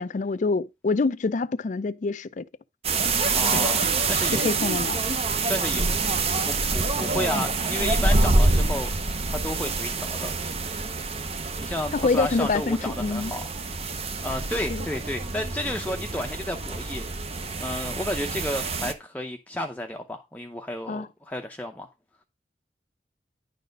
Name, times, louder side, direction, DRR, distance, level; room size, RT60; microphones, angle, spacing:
voice 1, 0.0-2.5 3.5-3.6 4.4-5.0 11.9-13.3 14.7-14.9 20.9-21.1, left 3 dB, 45° left, 0.4 m, -26 dB
sound 1, 2.8-18.9, right 3 dB, 35° right, 0.8 m, -26 dB
voice 2, 3.3-4.4 5.5-5.9 6.5-8.9 9.3-10.3 11.6-13.5 14.2-17.1 17.6-21.9, left 1 dB, 10° left, 0.7 m, -32 dB
10.0 x 4.0 x 5.2 m
head